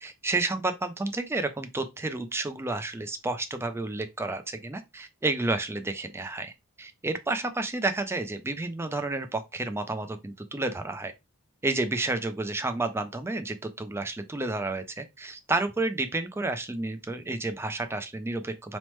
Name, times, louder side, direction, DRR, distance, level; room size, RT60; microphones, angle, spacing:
voice 1, 0.0-6.5 6.8-11.1 11.6-18.8, right 2 dB, 10° right, 0.4 m, -31 dB
3.0 x 2.1 x 3.1 m
head